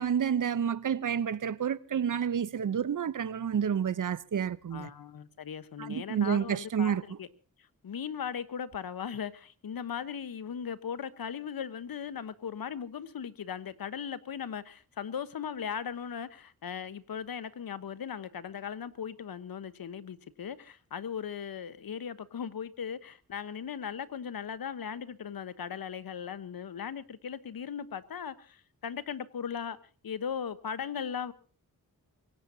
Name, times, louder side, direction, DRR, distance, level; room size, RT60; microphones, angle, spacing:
voice 1, 0.0-4.9 5.8-7.2, right 8 dB, 60° right, 0.8 m, -29 dB
voice 2, 4.7-7.3 7.8-29.8 30.0-31.3, left 7 dB, 75° left, 1.2 m, -38 dB
26.0 x 17.0 x 2.8 m
wide cardioid pair, 90°, 35 cm